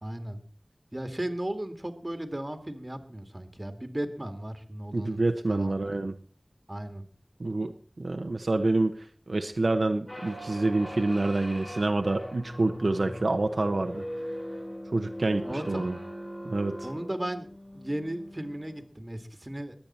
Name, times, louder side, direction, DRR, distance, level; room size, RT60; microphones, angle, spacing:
voice 1, 0.0-0.5 0.9-5.2 5.5-6.1 6.7-7.0 15.4-15.9 16.8-17.5 17.7-19.7, right 1 dB, 30° right, 8 dB, 2.0 m, -35 dB
voice 2, 4.9-6.2 7.4-14.0 14.9-16.0 16.4-16.9, right 2 dB, 80° right, 5 dB, 1.0 m, -27 dB
sound 1, 10.1-18.8, equal, 25° left, 7.2 m, -40 dB
21.5 x 8.7 x 4.3 m, 0.40 s
wide cardioid pair, 55°, 0 cm